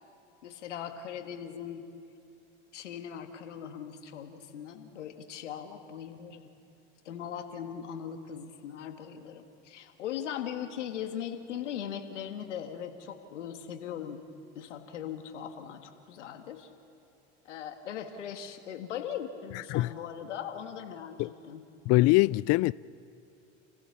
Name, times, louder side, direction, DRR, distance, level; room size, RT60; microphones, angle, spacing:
voice 1, 0.4-1.9 2.7-6.5 7.1-14.2 14.6-16.7 17.5-21.6, left 9 dB, 90° left, 1.8 m, -39 dB
voice 2, 21.9-22.7, left 20 dB, 45° left, 0.4 m, -23 dB
28.5 x 15.5 x 7.2 m
hypercardioid pair, 90°, 35 cm